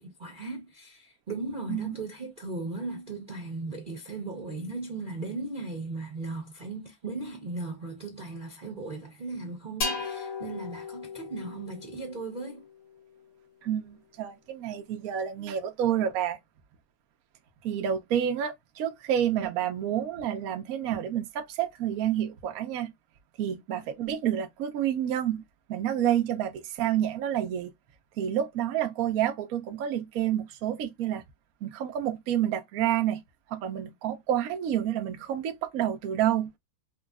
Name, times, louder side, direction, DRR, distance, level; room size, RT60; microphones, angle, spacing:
voice 1, 0.0-12.7, right 3 dB, 35° right, 0.8 m, -37 dB
sound 1, 9.8-13.4, left 4 dB, 90° left, 2.4 m, -37 dB
voice 2, 13.6-16.4 17.6-22.9 23.4-25.4 25.7-27.7 28.2-31.2 31.6-33.2 33.5-36.5, right 10 dB, 60° right, 0.9 m, -29 dB
4.9 x 2.3 x 2.3 m
omnidirectional pair, 2.3 m